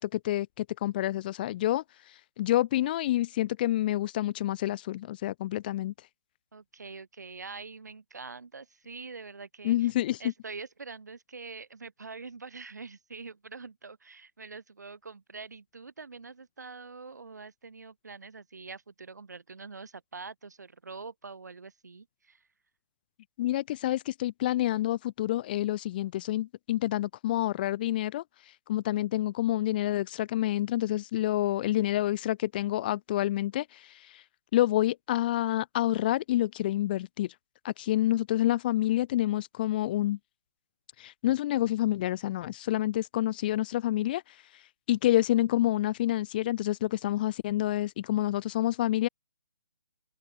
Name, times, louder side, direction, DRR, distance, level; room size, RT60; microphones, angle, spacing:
voice 1, 0.0-1.8 2.4-5.9 9.6-10.2 23.4-28.2 28.7-34.2 34.5-37.3 37.6-40.2 41.0-44.4 44.9-49.1, left 14 dB, 30° left, 0.6 m, -28 dB
voice 2, 6.5-9.9 10.2-22.4, right 4 dB, 70° right, 6.3 m, -44 dB
open air
figure-of-eight pair, 140°, 10 cm